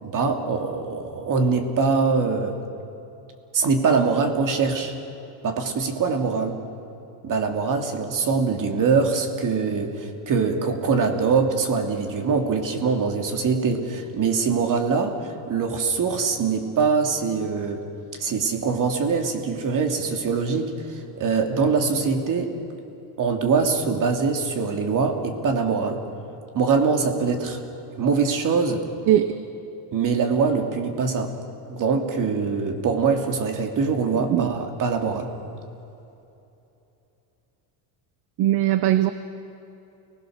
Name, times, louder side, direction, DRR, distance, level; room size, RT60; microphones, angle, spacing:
voice 1, 0.0-2.5 3.5-4.9 5.4-6.6 7.2-17.8 18.2-22.5 23.2-26.0 26.5-27.6 28.0-28.9 29.9-31.3 31.7-35.3, right 5 dB, 40° right, 4 dB, 2.9 m, -23 dB
voice 2, 38.4-39.1, right 13 dB, 55° right, 11 dB, 1.0 m, -19 dB
30.0 x 20.5 x 6.6 m, 2.9 s
cardioid pair, 140°, 48 cm